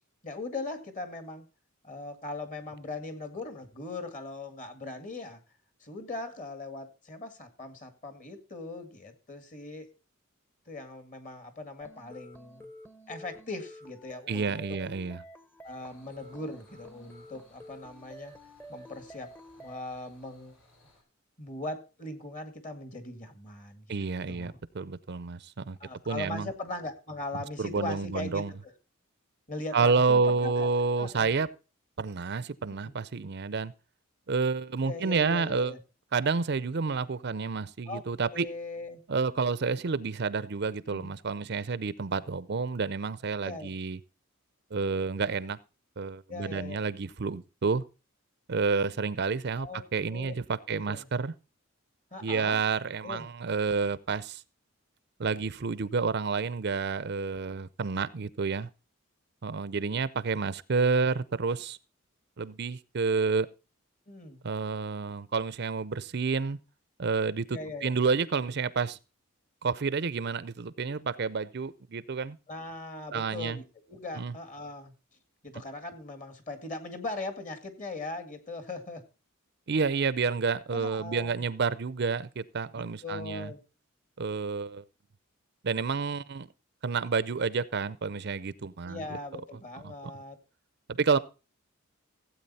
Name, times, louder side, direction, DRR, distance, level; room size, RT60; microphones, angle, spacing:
voice 1, 0.2-1.4 1.8-5.4 5.8-9.9 10.7-12.7 13.1-14.8 15.6-18.3 18.7-19.3 19.6-20.5 21.4-24.6 25.8-28.7 29.5-30.7 31.0-31.3 32.7-32.9 34.8-35.8 37.9-38.0 38.3-39.0 40.9-41.2 43.4-43.7 46.3-46.8 49.6-49.8 50.1-50.3 50.7-51.1 52.1-52.6 53.0-53.3 64.1-64.4 67.5-67.9 72.5-74.9 75.4-79.0 80.7-81.4 82.7-83.6 88.8-90.4, left 2 dB, 35° left, 2.1 m, -40 dB
sound 1, 11.8-19.8, equal, 10° left, 0.8 m, -50 dB
voice 2, 14.3-15.2 23.9-25.8 26.1-26.5 27.6-28.5 29.7-31.5 32.0-33.7 34.3-35.7 36.1-38.5 39.1-44.0 44.7-45.6 46.0-47.8 48.5-49.7 49.9-51.3 52.2-54.4 55.2-58.7 59.4-61.8 62.4-63.5 64.4-66.6 67.0-69.0 69.6-72.4 73.1-73.6 74.2-74.3 79.7-83.5 84.2-84.8 85.6-86.5 86.8-89.1 89.8-89.9 91.0-91.2, right 4 dB, 50° right, 0.6 m, -29 dB
sound 2, 15.6-21.0, left 1 dB, 85° left, 5.5 m, -63 dB
16.0 x 8.4 x 4.1 m
head